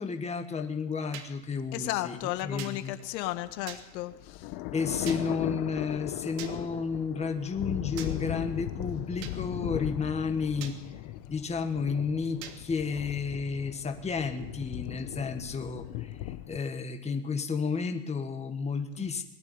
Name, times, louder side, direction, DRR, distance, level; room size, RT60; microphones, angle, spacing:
voice 1, 0.0-3.0 4.7-10.7 11.3-19.2, left 5 dB, 15° left, 6 dB, 1.5 m, -32 dB
sound 1, 1.1-1.3 2.6-2.8 3.7-3.8 5.1-5.2 6.4-6.5 8.0-8.1 9.2-9.4 10.6-10.8 12.4-12.6, right 9 dB, 85° right, 3.0 m, -41 dB
voice 2, 1.7-4.5 19.0-19.1, left 15 dB, 80° left, 9 dB, 1.9 m, -34 dB
sound 2, 3.5-16.6, left 15 dB, 50° left, 1.3 m, -38 dB
21.0 x 12.5 x 9.9 m, 0.91 s
supercardioid pair, 145°, 49 cm